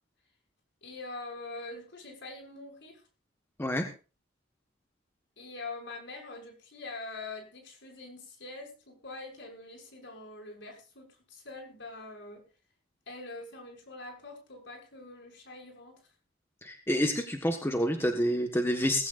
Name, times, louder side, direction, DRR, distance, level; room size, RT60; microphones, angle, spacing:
voice 1, 0.8-3.0 5.4-12.4 13.1-16.0, left 2 dB, 60° left, 1 dB, 6.1 m, -44 dB
voice 2, 16.6-19.1, equal, 10° left, 4 dB, 1.4 m, -28 dB
19.0 x 16.0 x 2.6 m, 0.34 s
head